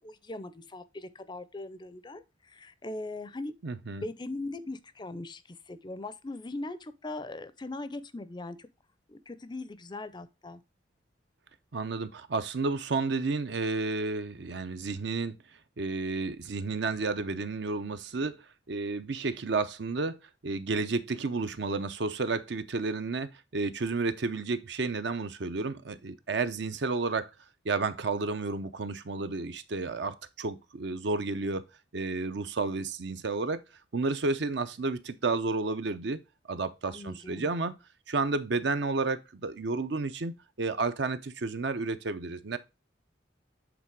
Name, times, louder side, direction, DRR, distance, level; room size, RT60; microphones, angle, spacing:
voice 1, 0.0-3.5 4.0-8.7 9.1-10.6 36.9-37.5, left 2 dB, 25° left, 0.5 m, -40 dB
voice 2, 3.6-4.0 11.7-15.3 15.8-18.4 18.7-20.2 20.4-27.3 27.6-31.7 31.9-33.6 33.9-36.2 36.5-37.7 38.1-42.6, right 3 dB, 60° right, 0.6 m, -31 dB
8.1 x 3.7 x 4.6 m
head